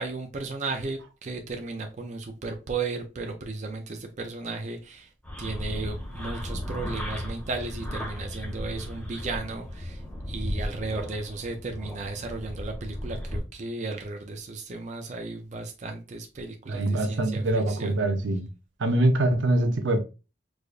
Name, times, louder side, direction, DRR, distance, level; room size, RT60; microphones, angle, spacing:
voice 1, 0.0-5.1 5.4-18.0, right 3 dB, 40° right, 0.5 m, -35 dB
sound 1, 5.2-13.4, equal, 10° left, 1.2 m, -35 dB
voice 2, 16.7-18.4 18.8-20.0, right 1 dB, 80° right, 0.7 m, -24 dB
4.7 x 2.5 x 2.4 m
head